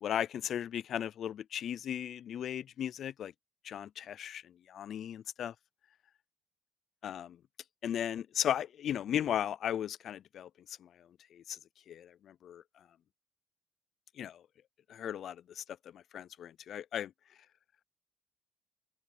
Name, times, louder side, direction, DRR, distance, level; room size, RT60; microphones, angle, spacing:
voice 1, 0.0-3.3 3.6-5.5 7.0-7.4 7.8-10.5 10.8-10.9 11.3-11.6 11.9-12.6 14.2-14.4 14.9-15.6 15.9-17.1, left 10 dB, 50° left, 0.4 m, -36 dB
open air
cardioid pair, 160°, 0 cm